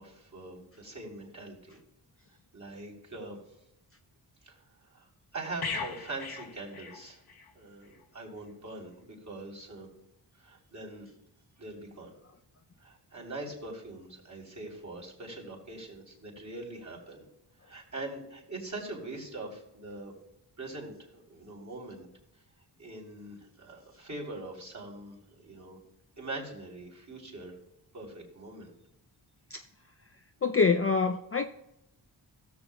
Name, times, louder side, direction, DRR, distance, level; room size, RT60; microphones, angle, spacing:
voice 1, 0.0-1.8 2.5-3.4 4.4-4.6 4.9-5.1 5.3-7.2 7.5-9.9 10.4-11.1 11.6-12.1 12.8-17.2 17.7-20.1 20.6-22.1 22.8-25.8 26.2-27.5 27.9-28.7, right 2 dB, 40° right, 3.5 m, -42 dB
sound 1, 5.6-7.5 7.8-8.0, left 5 dB, 55° left, 1.1 m, -38 dB
voice 2, 30.4-31.4, left 5 dB, 30° left, 0.5 m, -25 dB
17.0 x 7.0 x 2.3 m
cardioid pair, 65°, 46 cm